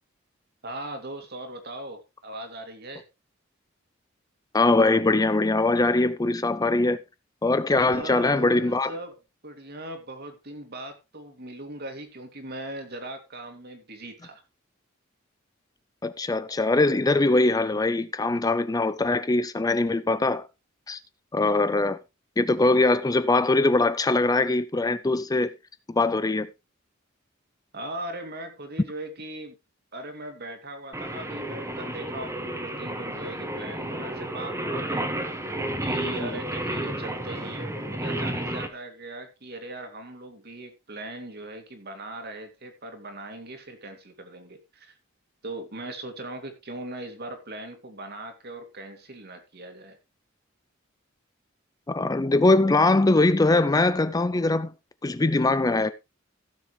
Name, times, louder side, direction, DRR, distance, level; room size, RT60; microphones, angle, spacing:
voice 1, 0.6-3.0 7.8-9.2 9.4-14.4 27.7-29.6 29.9-35.1 35.8-45.0 45.4-50.0, right 1 dB, 55° right, 2.6 m, -39 dB
voice 2, 4.5-7.0 7.4-8.9 16.0-20.4 20.9-21.0 21.3-22.0 22.4-25.5 25.9-26.5 36.2-36.3 51.9-54.7 55.0-55.9, left 2 dB, 20° left, 0.5 m, -22 dB
Singing, 30.9-38.7, right 1 dB, 15° right, 1.5 m, -31 dB
16.0 x 7.1 x 3.2 m
head